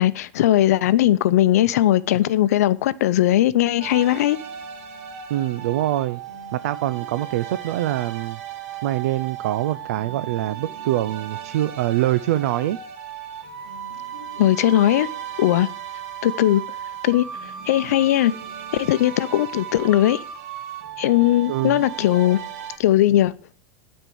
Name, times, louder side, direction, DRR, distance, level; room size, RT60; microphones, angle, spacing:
voice 1, 0.0-4.4 14.4-15.1 15.4-15.7 16.2-16.6 17.0-17.2 17.7-18.3 18.7-20.2 21.0-22.4 22.8-23.3, left 13 dB, 90° left, 0.6 m, -18 dB
sound 1, 3.8-22.8, right 8 dB, 55° right, 1.7 m, -36 dB
voice 2, 5.3-6.2 6.5-8.4 8.8-12.8 21.5-21.8, right 14 dB, 80° right, 0.5 m, -24 dB
12.5 x 4.4 x 7.8 m
supercardioid pair, 155°, 8 cm